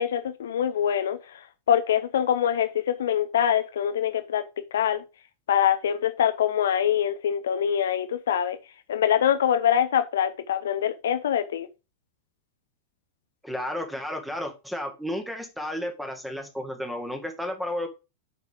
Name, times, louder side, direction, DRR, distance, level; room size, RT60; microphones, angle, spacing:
voice 1, 0.0-4.4 4.7-5.0 5.5-8.6 8.9-11.7, left 9 dB, 60° left, 0.8 m, -24 dB
voice 2, 13.4-17.9, left 1 dB, ahead, 1.9 m, -32 dB
9.1 x 5.4 x 3.6 m
figure-of-eight pair, 90°, 0 cm